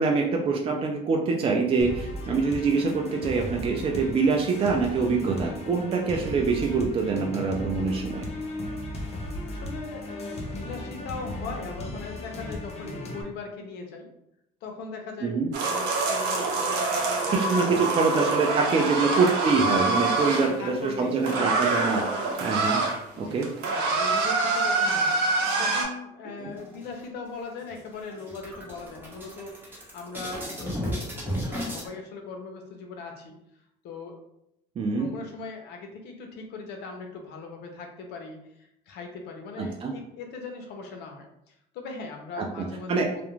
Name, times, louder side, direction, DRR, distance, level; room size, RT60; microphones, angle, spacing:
voice 1, 0.0-8.3 15.2-15.5 17.3-22.1 22.4-22.8 23.2-23.5 26.4-26.5 34.8-35.1 39.6-39.9 42.4-43.1, right 4 dB, 35° right, 1 dB, 0.4 m, -25 dB
sound 1, 1.8-13.2, left 2 dB, 40° left, 0.6 m, -36 dB
voice 2, 9.5-14.1 14.6-18.1 18.8-19.3 20.0-21.3 23.1-33.4 33.8-34.2 34.8-43.2, left 4 dB, 80° left, 3 dB, 0.6 m, -40 dB
sound 2, 15.5-20.5 21.2-23.0 23.3-25.8, right 3 dB, 80° right, 0.6 m, -25 dB
sound 3, 26.5-27.3 27.7-27.8 28.1-31.9, equal, 10° right, 0.9 m, -34 dB
2.4 x 2.1 x 3.0 m, 0.79 s
cardioid pair, 110°, 17 cm